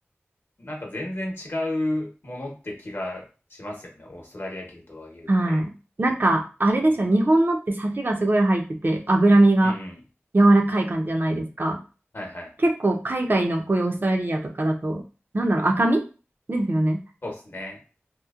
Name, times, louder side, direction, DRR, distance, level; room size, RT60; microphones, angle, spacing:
voice 1, 0.6-5.6 6.8-6.9 9.6-10.0 12.1-12.5 17.2-17.8, left 1 dB, 55° left, 0 dB, 0.8 m, -33 dB
voice 2, 5.3-5.7 6.0-9.8 10.3-11.8 12.6-15.0 15.3-16.0 16.5-17.0, right 1 dB, 50° right, 2 dB, 0.5 m, -21 dB
2.9 x 2.0 x 2.3 m, 0.34 s
wide cardioid pair, 55°, 4 cm